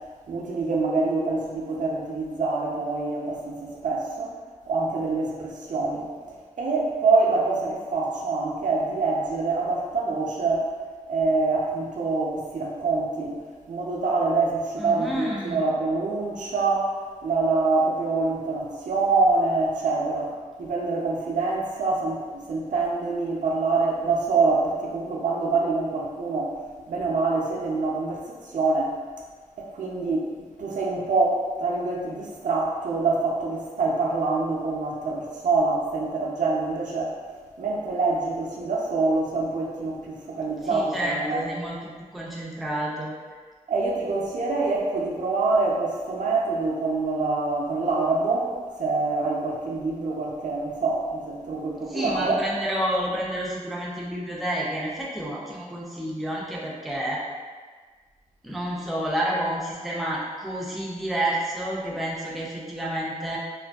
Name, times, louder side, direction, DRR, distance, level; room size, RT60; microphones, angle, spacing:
voice 1, 0.3-4.3 4.7-10.7 11.1-13.3 13.7-16.9 17.2-20.3 20.6-26.5 26.9-28.9 29.6-30.3 30.6-37.1 37.6-41.4 43.7-48.5 48.8-52.4, right 3 dB, 80° right, -3 dB, 0.5 m, -25 dB
voice 2, 14.8-15.6 40.7-41.8 42.1-43.1 51.9-57.2 58.4-63.4, right 1 dB, ahead, -5 dB, 0.3 m, -29 dB
2.5 x 2.4 x 2.2 m, 1.5 s
wide cardioid pair, 165°, 13 cm